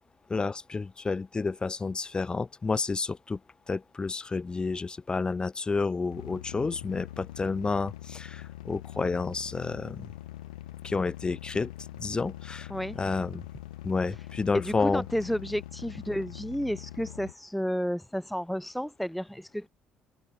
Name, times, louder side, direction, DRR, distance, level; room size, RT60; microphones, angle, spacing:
voice 1, 0.3-3.4 3.7-10.1 10.8-11.7 12.0-12.7 13.0-13.4 13.8-15.0, left 4 dB, 25° left, 0.9 m, -30 dB
sound 1, 6.1-17.3, left 15 dB, 75° left, 3.6 m, -43 dB
voice 2, 14.5-19.7, equal, ahead, 0.6 m, -32 dB
figure-of-eight pair, 50°, 4 cm